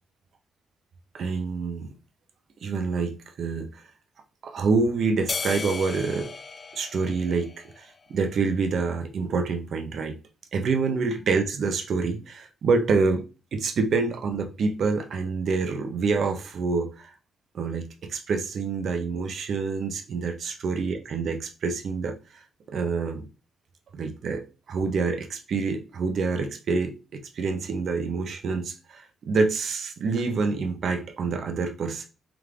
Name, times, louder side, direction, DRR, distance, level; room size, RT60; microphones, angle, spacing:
voice 1, 1.1-1.9 2.6-3.8 4.4-6.3 6.7-10.2 10.5-13.2 13.5-17.1 17.5-22.4 22.7-23.3 23.9-32.1, right 4 dB, 60° right, 0.8 m, -27 dB
sound 1, 5.3-7.9, left 4 dB, 40° left, 0.3 m, -35 dB
3.7 x 3.3 x 3.6 m
cardioid pair, 95°, 0 cm